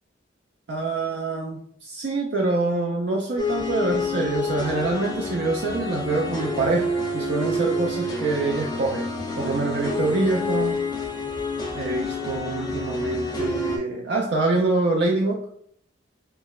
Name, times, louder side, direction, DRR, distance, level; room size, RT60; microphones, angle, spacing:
voice 1, 0.7-9.1 9.4-10.8 11.7-15.4, right 3 dB, 55° right, -1 dB, 0.4 m, -25 dB
sound 1, 3.4-13.8, left 2 dB, 20° left, 0.6 m, -28 dB
5.5 x 2.1 x 2.3 m, 0.64 s
head